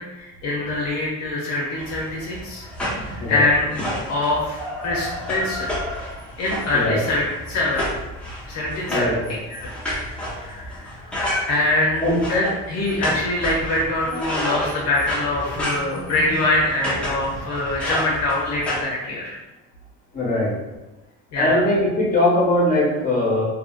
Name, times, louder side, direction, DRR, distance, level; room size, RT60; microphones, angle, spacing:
voice 1, 0.0-2.7 3.1-3.8 4.1-4.6 4.8-5.7 6.4-7.9 8.4-9.1 10.3-10.9 11.5-19.3 21.3-21.6, left 2 dB, 55° left, -4 dB, 0.6 m, -24 dB
sound 1, 1.8-18.8, equal, 5° left, 0.7 m, -30 dB
voice 2, 8.9-9.4 12.0-12.2 14.1-14.3 20.1-20.5 21.3-23.4, left 1 dB, 25° left, -4 dB, 1.0 m, -21 dB
2.7 x 2.6 x 2.3 m, 1.1 s
cardioid pair, 125°, 33 cm